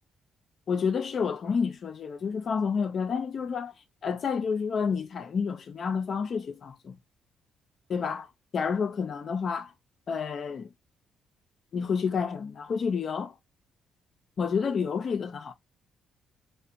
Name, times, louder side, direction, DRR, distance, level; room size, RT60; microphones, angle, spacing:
voice 1, 0.7-3.7 4.0-7.0 7.9-8.3 8.5-9.7 10.1-10.7 11.7-13.3 14.4-15.5, left 6 dB, 50° left, 0.4 m, -29 dB
2.5 x 2.1 x 2.3 m
cardioid pair, 90°, 0 cm